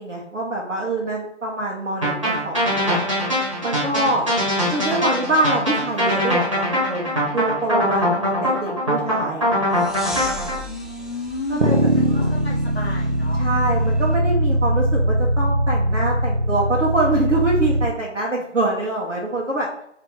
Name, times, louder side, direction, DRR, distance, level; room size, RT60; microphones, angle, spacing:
voice 1, 0.0-3.0 3.6-4.3 4.7-9.5 11.5-12.3 13.3-19.7, right 2 dB, 85° right, -4 dB, 1.1 m, -25 dB
sound 1, 2.0-10.6, equal, 25° right, 1.1 m, -22 dB
sound 2, 9.7-14.2, equal, ahead, 0.3 m, -37 dB
voice 2, 10.7-11.6 11.9-13.4, left 3 dB, 50° left, -4 dB, 0.7 m, -32 dB
sound 3, 11.6-17.9, right 1 dB, 50° right, 0.6 m, -20 dB
2.9 x 2.8 x 3.6 m, 0.74 s
figure-of-eight pair, 175°, 37 cm